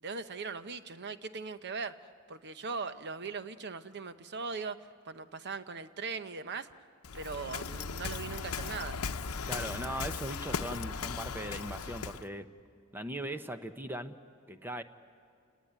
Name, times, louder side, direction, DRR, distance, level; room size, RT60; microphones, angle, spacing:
voice 1, 0.0-6.7 7.1-9.0, right 4 dB, 50° right, 11 dB, 0.9 m, -40 dB
Waves surf, 7.0-12.3, left 5 dB, 85° left, 0.8 m, -37 dB
voice 2, 9.5-12.5 12.9-14.2 14.5-14.8, right 1 dB, 10° right, 9 dB, 0.9 m, -39 dB
29.0 x 19.0 x 9.6 m, 2.3 s
head